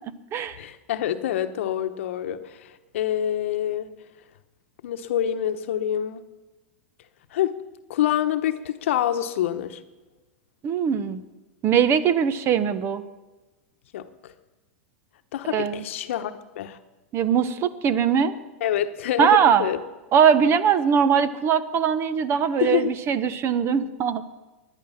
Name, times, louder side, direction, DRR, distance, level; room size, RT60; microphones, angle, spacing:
voice 1, 0.5-3.9 4.8-6.2 7.3-7.6 7.9-9.8 13.9-14.3 15.3-16.8 18.6-19.8 22.6-22.9, left 11 dB, 70° left, 9 dB, 1.0 m, -26 dB
voice 2, 10.6-11.2 11.6-13.0 15.5-15.8 17.1-18.3 19.2-19.6 20.1-24.2, right 7 dB, 35° right, 15 dB, 0.9 m, -21 dB
17.5 x 11.0 x 5.8 m, 1.1 s
hypercardioid pair, 105°, 7 cm